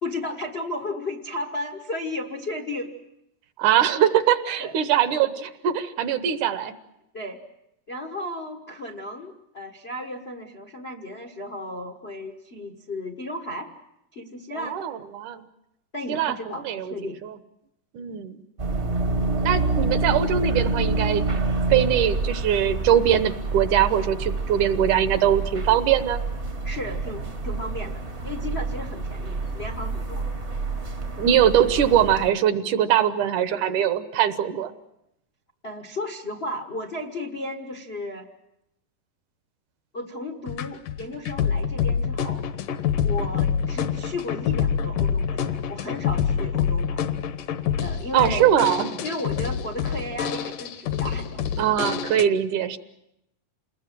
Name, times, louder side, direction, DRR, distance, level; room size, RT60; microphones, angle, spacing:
voice 1, 0.0-2.9 4.6-4.8 7.1-7.4 7.9-13.7 14.1-14.8 15.9-17.2 26.6-30.3 35.6-38.3 39.9-42.4 43.0-47.1 47.8-48.5 49.0-51.4, left 1 dB, 60° left, 4 dB, 0.6 m, -34 dB
voice 2, 3.6-6.7 14.6-15.4 16.1-16.4 16.6-17.3 17.9-18.4 19.4-21.3 21.7-26.2 31.2-34.7 48.1-49.0 51.6-52.8, right 10 dB, 70° right, 11 dB, 2.4 m, -22 dB
sound 1, 18.6-32.3, right 3 dB, 40° right, 0.9 m, -28 dB
sound 2, 40.5-52.3, left 7 dB, 75° left, 2.6 m, -26 dB
27.5 x 20.5 x 7.5 m, 0.84 s
omnidirectional pair, 3.8 m